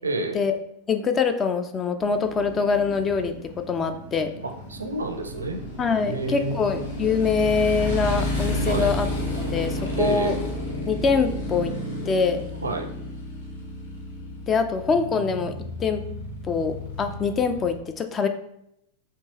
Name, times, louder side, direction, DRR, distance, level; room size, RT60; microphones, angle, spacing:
voice 1, 0.0-0.4 4.4-5.6 6.1-6.7 8.7-8.9 10.0-10.3 12.6-12.9, right 2 dB, 75° right, 5 dB, 0.5 m, -29 dB
voice 2, 0.9-4.3 5.8-9.1 9.4-10.3 10.9-11.7 12.1-12.4 14.5-15.5 15.8-16.0 16.4-18.3, left 5 dB, 25° left, 8 dB, 0.4 m, -24 dB
Motorcycle, 2.0-17.8, left 1 dB, 70° left, 0.9 m, -32 dB
4.4 x 2.9 x 2.9 m, 0.78 s
figure-of-eight pair, 90°, 0 cm